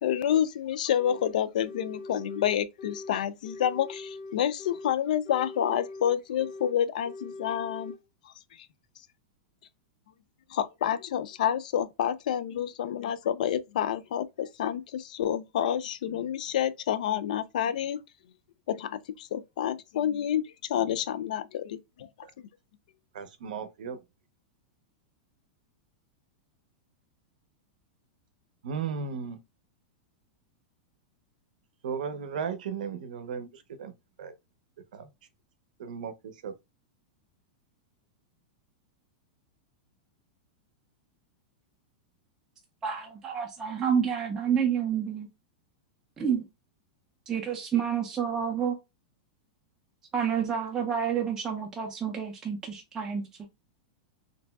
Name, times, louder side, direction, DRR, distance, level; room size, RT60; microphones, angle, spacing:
voice 1, 0.0-7.9 8.2-8.7 10.5-18.0 18.7-20.4 20.7-22.1 22.4-22.5, left 10 dB, 70° left, 0.3 m, -29 dB
sound 1, 1.0-1.4 1.6-3.2 3.4-5.0 5.2-6.8 7.0-8.0, left 3 dB, 85° left, 0.9 m, -42 dB
voice 2, 23.1-24.0 28.6-29.4 31.8-33.5 33.8-33.9 34.2-34.3 34.9-35.1 35.8-36.1 36.4-36.5, right 6 dB, 80° right, 0.6 m, -35 dB
voice 3, 42.8-45.3 46.2-46.5 47.3-48.8 50.1-53.5, right 7 dB, 10° right, 0.3 m, -29 dB
3.0 x 2.6 x 2.2 m
supercardioid pair, 170°, 4 cm